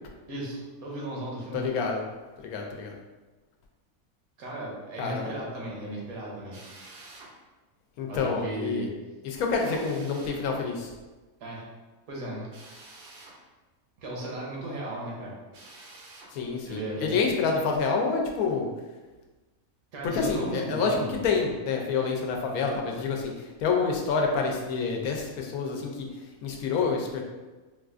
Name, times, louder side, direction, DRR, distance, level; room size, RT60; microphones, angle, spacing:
voice 1, 0.3-1.7 4.4-6.6 8.1-8.9 9.7-9.9 11.4-11.6 12.1-12.5 14.0-15.3 16.6-17.1 19.9-21.2, right 1 dB, 80° right, -3 dB, 1.3 m, -35 dB
voice 2, 1.5-2.0 2.4-3.0 5.0-5.3 8.0-8.9 9.2-10.9 16.3-18.7 20.0-26.1 26.4-27.2, left 5 dB, 90° left, 1 dB, 1.0 m, -28 dB
Drill, 6.5-7.3 9.5-10.4 12.5-13.4 15.5-16.3, right 2 dB, 60° right, 0.6 m, -49 dB
4.1 x 2.4 x 2.4 m, 1.2 s
omnidirectional pair, 1.5 m